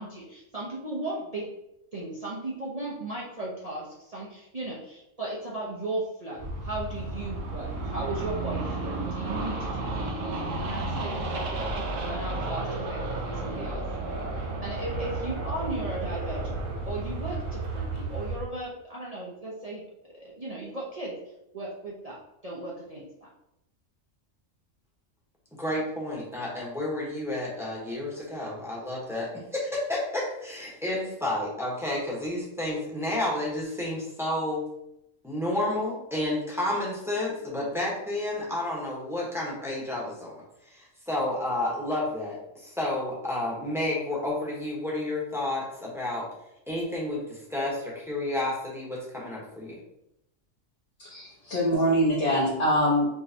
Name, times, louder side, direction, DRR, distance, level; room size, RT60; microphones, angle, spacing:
voice 1, 0.0-1.5 1.9-13.8 14.6-16.6 16.8-19.8 20.1-21.1 21.5-22.2 22.4-23.3, right 2 dB, 35° right, -6 dB, 0.7 m, -36 dB
sound 1, 6.4-18.4, right 2 dB, 75° right, 1.1 m, -32 dB
voice 2, 25.6-34.7 35.2-46.3 46.7-49.8, left 1 dB, ahead, -5 dB, 0.9 m, -31 dB
voice 3, 51.0-53.1, equal, 35° left, -6 dB, 0.7 m, -24 dB
4.6 x 3.1 x 2.7 m, 0.83 s
omnidirectional pair, 1.4 m